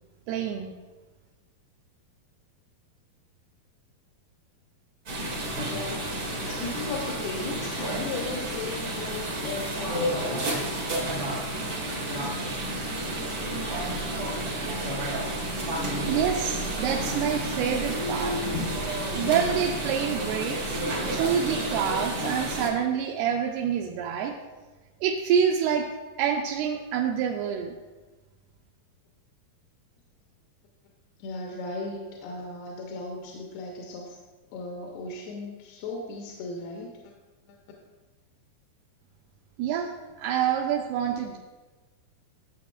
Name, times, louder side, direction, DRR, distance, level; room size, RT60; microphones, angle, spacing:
voice 1, 0.3-0.7 16.1-18.4 19.1-20.8 21.1-24.3 25.0-25.9 26.2-27.8 39.6-39.9 40.2-41.4, right 8 dB, 85° right, 1 dB, 2.5 m, -27 dB
sound 1, 5.1-22.7, right 1 dB, 60° right, 1.2 m, -30 dB
voice 2, 5.7-6.2 6.5-10.9 31.2-34.2 34.5-36.9 37.5-37.6 40.4-40.5, left 3 dB, 85° left, -1 dB, 2.8 m, -37 dB
13.5 x 6.8 x 2.4 m, 1.2 s
omnidirectional pair, 4.5 m